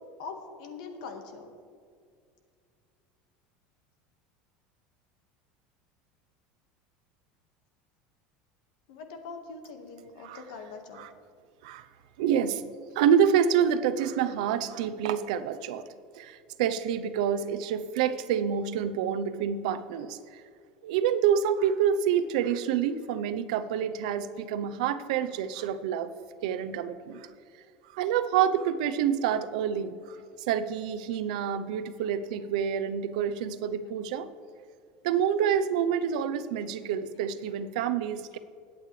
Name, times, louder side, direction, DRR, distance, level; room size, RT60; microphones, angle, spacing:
voice 1, 0.2-1.5 8.9-11.0, left 4 dB, 75° left, 5 dB, 1.6 m, -42 dB
voice 2, 12.2-12.6 12.9-15.8 16.1-20.4 20.8-26.1 26.4-27.3 27.9-30.2 30.5-34.3 35.0-38.4, right 8 dB, 85° right, 11 dB, 0.7 m, -27 dB
21.0 x 8.6 x 3.3 m, 2.2 s
cardioid pair, 180°, 4 cm